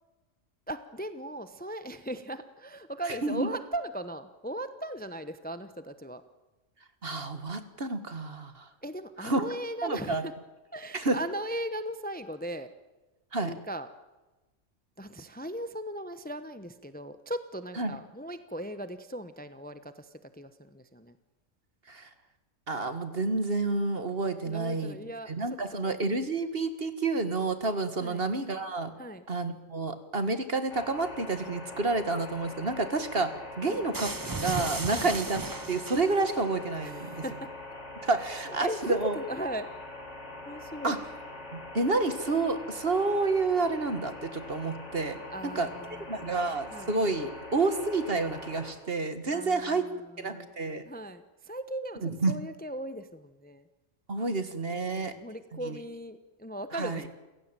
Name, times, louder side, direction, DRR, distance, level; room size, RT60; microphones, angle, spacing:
voice 1, 0.7-6.2 8.8-10.3 10.7-12.7 13.4-13.9 15.0-21.2 24.5-25.9 28.0-28.2 29.0-29.2 33.6-33.8 34.9-35.1 36.8-37.5 38.4-39.7 40.4-41.0 45.3-46.4 46.7-46.9 49.3-49.9 50.3-50.6 50.9-53.6 54.7-57.1, right 1 dB, 10° left, 11 dB, 0.9 m, -38 dB
voice 2, 3.1-3.5 7.0-8.7 9.2-9.4 9.8-10.2 10.9-11.2 13.3-13.5 17.8-17.9 21.9-22.1 22.7-25.0 25.3-28.9 29.3-33.3 33.6-35.4 35.7-37.2 38.0-39.2 40.8-41.0 41.5-45.2 45.4-45.7 46.1-49.9 50.2-50.8 52.0-52.4 54.1-55.1 55.6-55.8 56.7-57.0, right 3 dB, 50° right, 10 dB, 2.0 m, -29 dB
sound 1, 30.7-48.7, left 2 dB, 65° left, 3.5 m, -43 dB
sound 2, 33.9-36.4, right 3 dB, 20° right, 0.7 m, -35 dB
29.0 x 16.5 x 9.1 m, 1.1 s
omnidirectional pair, 1.3 m